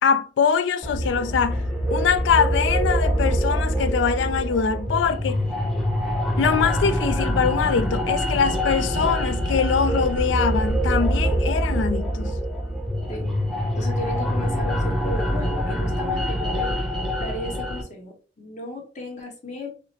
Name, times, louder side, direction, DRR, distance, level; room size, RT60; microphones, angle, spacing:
voice 1, 0.0-1.6 1.9-5.4 6.4-12.4, left 6 dB, 75° left, 0.4 m, -23 dB
sound 1, 0.8-17.8, equal, ahead, 0.6 m, -24 dB
voice 2, 13.1-13.4 13.8-16.7 17.2-19.7, left 1 dB, 40° left, 1.0 m, -35 dB
4.8 x 2.0 x 2.8 m
head